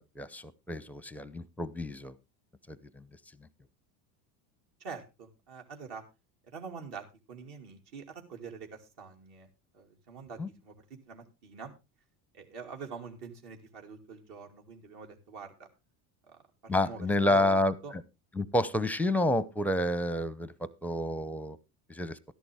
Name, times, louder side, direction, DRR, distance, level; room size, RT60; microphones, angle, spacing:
voice 1, 0.0-2.1 2.7-3.0 10.4-10.5 16.7-17.7 18.4-21.6 21.9-22.2, left 1 dB, 5° left, 18 dB, 0.6 m, -29 dB
voice 2, 4.8-6.0 6.5-9.5 9.7-11.7 12.3-15.7 16.3-17.9, right 5 dB, 55° right, 2 dB, 2.6 m, -45 dB
13.0 x 11.0 x 3.5 m, 0.26 s
supercardioid pair, 105°, 46 cm